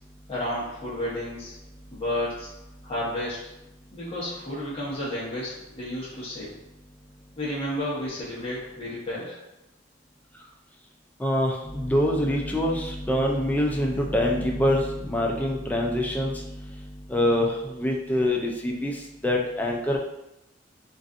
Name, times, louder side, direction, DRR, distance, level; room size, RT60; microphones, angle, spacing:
voice 1, 0.3-1.5 1.9-2.5 2.8-3.4 3.9-6.5 7.4-9.4, left 1 dB, 30° left, -8 dB, 1.0 m, -31 dB
voice 2, 11.2-16.6 17.1-18.9 19.2-20.0, left 1 dB, 10° left, 0 dB, 0.3 m, -25 dB
2.5 x 2.4 x 2.4 m, 0.90 s
head